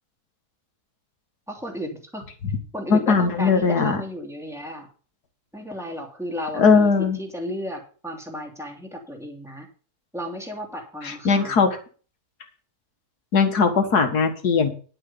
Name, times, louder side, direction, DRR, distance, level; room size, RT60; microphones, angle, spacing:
voice 1, 1.5-2.3 2.7-4.9 5.5-6.9 7.2-9.7 10.1-11.7, equal, ahead, 1 dB, 2.8 m, -34 dB
voice 2, 2.9-4.0 6.6-7.2 11.0-11.8 13.3-14.7, left 5 dB, 80° left, 6 dB, 2.2 m, -19 dB
11.0 x 6.2 x 6.8 m, 0.39 s
omnidirectional pair, 1.6 m